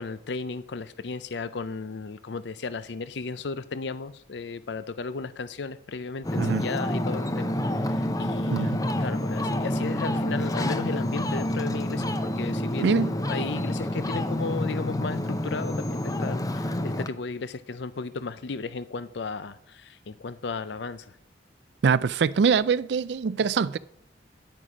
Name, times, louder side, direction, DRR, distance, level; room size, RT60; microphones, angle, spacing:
voice 1, 0.0-7.6 7.8-21.1, left 4 dB, 70° left, 0.5 m, -35 dB
Ocean, 6.2-17.1, left 1 dB, 20° left, 0.5 m, -28 dB
voice 2, 12.8-13.1 21.8-23.8, right 5 dB, 65° right, 0.4 m, -23 dB
10.0 x 9.1 x 4.9 m
head